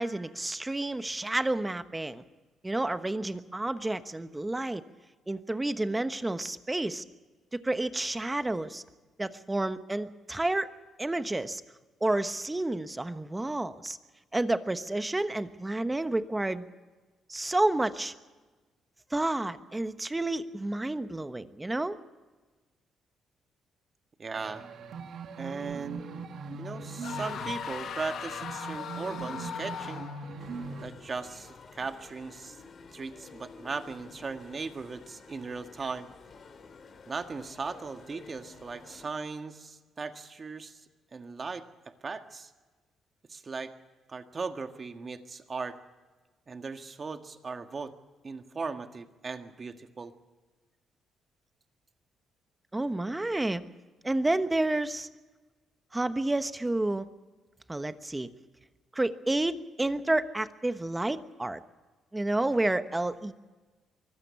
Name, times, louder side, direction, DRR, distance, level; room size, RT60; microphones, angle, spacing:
voice 1, 0.0-2.2 2.6-4.8 5.3-7.0 7.5-8.8 9.2-10.7 11.0-11.6 12.0-14.0 14.3-16.6 17.3-18.1 19.1-22.0 52.7-53.6 54.0-55.1 55.9-57.1 57.7-58.3 58.9-61.6 62.1-63.3, right 2 dB, 15° right, 11 dB, 1.2 m, -30 dB
voice 2, 24.2-24.6 25.4-26.2 26.5-30.1 30.8-32.6 32.9-36.1 37.1-40.8 41.1-42.5 43.3-43.7 44.1-45.8 46.5-47.9 48.2-50.1, right 4 dB, 35° right, 7 dB, 1.7 m, -38 dB
sound 1, 24.3-30.9, right 4 dB, 65° right, 1.7 m, -41 dB
sound 2, 27.0-30.4, left 8 dB, 70° left, 1.5 m, -38 dB
sound 3, 30.4-39.1, left 4 dB, 50° left, 2.5 m, -51 dB
24.0 x 15.5 x 7.1 m, 1.3 s
cardioid pair, 90°, 0 cm